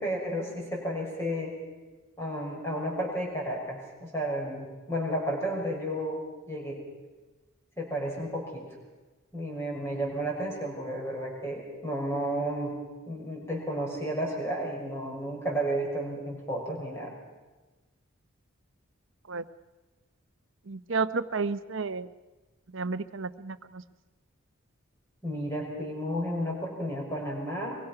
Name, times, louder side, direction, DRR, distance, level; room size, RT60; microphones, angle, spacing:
voice 1, 0.0-1.5 2.2-6.8 7.8-8.7 9.3-12.8 13.1-17.1 25.2-27.8, right 1 dB, 10° left, -2 dB, 6.1 m, -32 dB
voice 2, 20.7-22.1 22.7-23.8, right 4 dB, 65° right, 12 dB, 0.9 m, -31 dB
23.5 x 23.0 x 5.9 m, 1.2 s
head